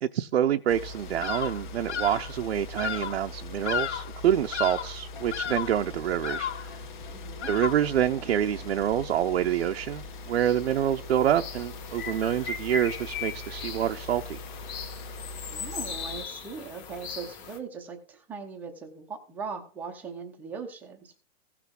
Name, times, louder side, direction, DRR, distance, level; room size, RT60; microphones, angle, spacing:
voice 1, 0.0-6.7 7.5-14.4, right 10 dB, 65° right, 0.7 m, -27 dB
sound 1, 0.7-16.3, left 3 dB, 40° left, 1.2 m, -42 dB
Bird vocalization bird call bird song, 1.2-1.6 1.9-2.3 2.8-3.2 3.6-4.2 4.5-5.0 5.3-5.8 6.2-6.7 7.4-7.9, left 9 dB, 70° left, 0.8 m, -33 dB
voice 2, 7.1-7.5 15.5-21.2, right 5 dB, 5° right, 0.7 m, -40 dB
sound 2, 9.5-9.7 9.9-17.6, left 6 dB, 25° left, 1.4 m, -39 dB
16.0 x 5.9 x 3.7 m
hypercardioid pair, 170°, 36 cm